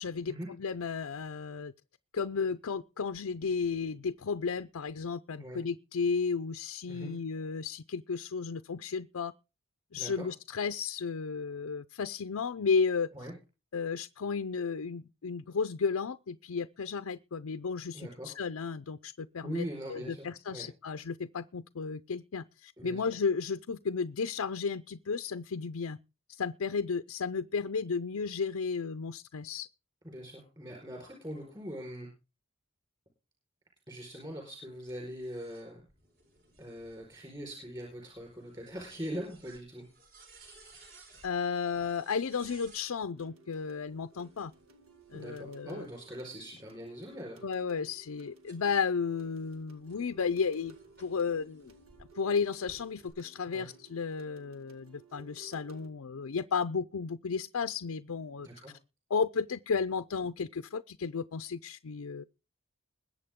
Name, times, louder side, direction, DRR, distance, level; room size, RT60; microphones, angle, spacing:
voice 1, 0.0-1.7 2.1-9.3 9.9-13.1 13.7-26.0 26.3-29.7 41.2-44.5 45.1-45.9 47.4-51.8 52.1-58.5 59.1-62.2, left 5 dB, 85° left, 0.6 m, -33 dB
voice 2, 10.0-10.3 13.1-13.3 17.9-18.4 19.4-20.7 22.8-23.1 30.0-32.1 33.9-35.9 36.6-39.8 45.1-47.4 53.5-53.7 58.4-58.7, equal, 20° right, 4.5 m, -42 dB
sound 1, 34.9-42.9 44.0-46.4 47.0-52.0 52.5-53.1, right 3 dB, 50° right, 4.7 m, -60 dB
sound 2, 43.1-55.9, right 3 dB, 80° right, 2.1 m, -56 dB
21.5 x 8.4 x 3.7 m
head